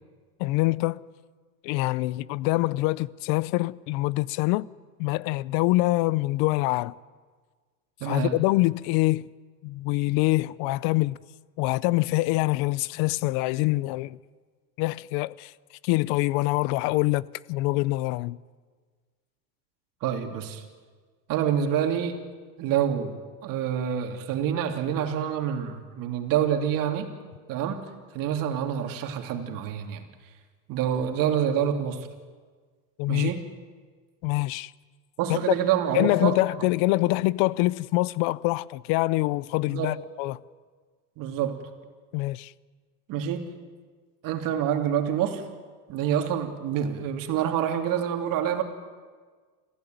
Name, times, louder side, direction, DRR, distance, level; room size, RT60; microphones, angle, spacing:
voice 1, 0.4-1.0 1.6-4.7 5.0-6.9 8.0-9.3 9.6-11.2 11.6-14.2 14.8-15.5 15.8-18.4 33.0-33.3 34.2-34.7 35.5-35.6 35.9-40.4 42.1-42.5, left 20 dB, 50° left, 0.6 m, -25 dB
voice 2, 8.0-8.3 20.0-20.6 21.3-22.2 22.6-23.1 23.4-27.1 27.5-27.9 28.1-30.0 30.7-32.1 33.1-33.4 35.2-36.7 39.7-40.0 41.2-41.6 43.1-43.5 44.2-45.4 45.9-48.6, right 9 dB, 45° right, 3.1 m, -27 dB
27.0 x 16.0 x 9.4 m
supercardioid pair, 140°, 46 cm